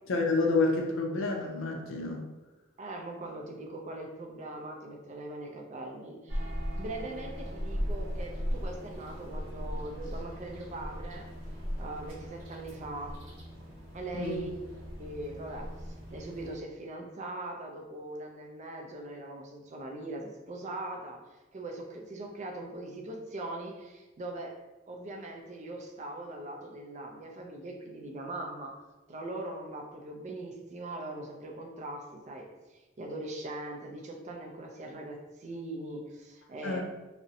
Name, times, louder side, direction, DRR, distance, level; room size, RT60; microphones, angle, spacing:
voice 1, 0.1-2.2 14.1-14.4 36.6-36.8, left 3 dB, 75° left, 1 dB, 0.4 m, -29 dB
voice 2, 2.8-6.5 6.8-11.3 11.8-13.2 13.9-14.5 15.0-24.6 24.9-28.8 29.1-36.8, right 2 dB, 35° right, 1 dB, 0.3 m, -41 dB
sound 1, 6.3-16.5, equal, 80° right, 0.8 m, -38 dB
2.5 x 2.0 x 2.7 m, 1.1 s
head